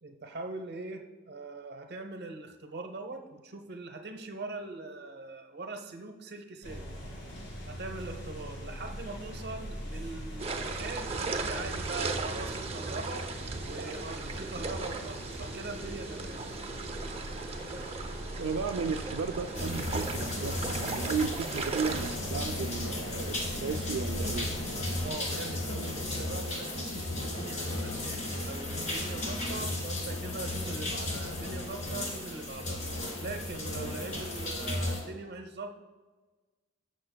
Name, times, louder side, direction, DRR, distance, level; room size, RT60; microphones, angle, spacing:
voice 1, 0.0-6.8 7.7-13.3 13.6-16.4 25.0-32.8 33.2-35.7, right 3 dB, 55° right, 5 dB, 0.8 m, -42 dB
sound 1, 6.6-25.1, equal, 60° left, 2.3 m, -42 dB
sound 2, 10.4-22.2, right 4 dB, 30° right, 0.6 m, -37 dB
voice 2, 18.4-24.5, right 5 dB, 80° right, 4 dB, 0.4 m, -34 dB
sound 3, 19.5-35.0, left 1 dB, 40° left, 1.7 m, -35 dB
15.0 x 6.6 x 2.3 m, 1.3 s
head